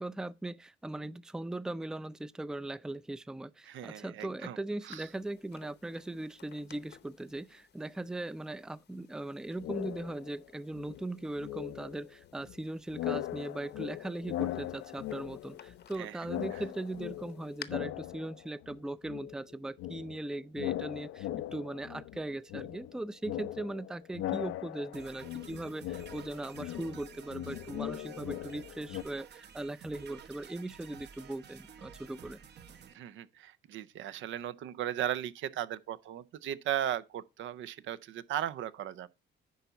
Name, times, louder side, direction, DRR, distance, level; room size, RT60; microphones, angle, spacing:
voice 1, 0.0-32.4, right 2 dB, 5° right, 0.4 m, -39 dB
voice 2, 3.6-4.6 4.8-5.1 16.0-16.2 16.5-16.6 32.9-39.1, right 11 dB, 75° right, 0.6 m, -37 dB
sound 1, 4.9-17.7, left 9 dB, 55° left, 0.8 m, -56 dB
sound 2, 9.6-10.5 10.7-12.6 12.9-16.0 16.2-18.8 19.1-29.0, left 13 dB, 85° left, 0.5 m, -39 dB
sound 3, 24.9-32.9, right 7 dB, 60° right, 0.9 m, -52 dB
10.5 x 4.0 x 5.5 m
cardioid pair, 90°, 20 cm